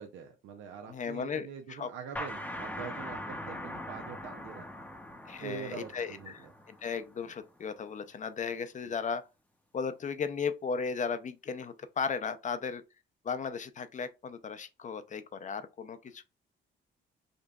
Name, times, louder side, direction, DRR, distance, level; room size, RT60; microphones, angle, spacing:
voice 1, 0.0-4.7 5.4-6.5 8.9-9.0, right 7 dB, 80° right, 0.6 m, -44 dB
voice 2, 0.9-1.9 5.3-9.2 9.7-12.8 13.2-16.2, left 5 dB, 40° left, 0.5 m, -36 dB
sound 1, 2.2-7.6, left 1 dB, 5° left, 0.7 m, -42 dB
5.1 x 2.5 x 2.3 m
cardioid pair, 90°, 20 cm